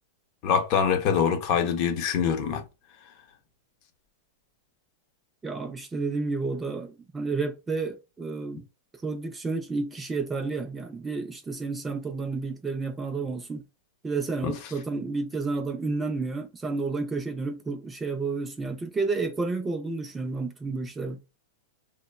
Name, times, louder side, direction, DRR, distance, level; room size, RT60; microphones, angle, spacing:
voice 1, 0.4-2.6 14.4-14.5, left 7 dB, 40° left, 0.6 m, -24 dB
voice 2, 5.4-8.6 9.0-13.6 14.0-21.2, right 3 dB, 10° right, 0.3 m, -31 dB
3.1 x 2.0 x 2.2 m
supercardioid pair, 150°, 0 cm